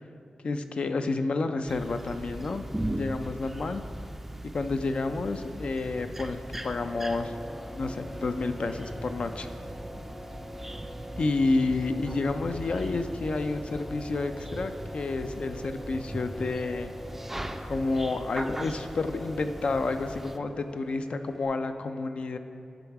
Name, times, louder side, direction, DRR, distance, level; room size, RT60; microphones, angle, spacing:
voice 1, 0.4-2.6 3.0-3.8 4.4-7.4 7.8-9.5 11.2-16.9 17.6-22.4, left 3 dB, 60° left, 8 dB, 0.4 m, -30 dB
sound 1, 1.7-20.4, right 1 dB, 10° right, 0.3 m, -39 dB
sound 2, 5.5-21.5, equal, 15° left, 0.7 m, -45 dB
10.5 x 4.0 x 4.6 m, 2.7 s
wide cardioid pair, 95°, 2 cm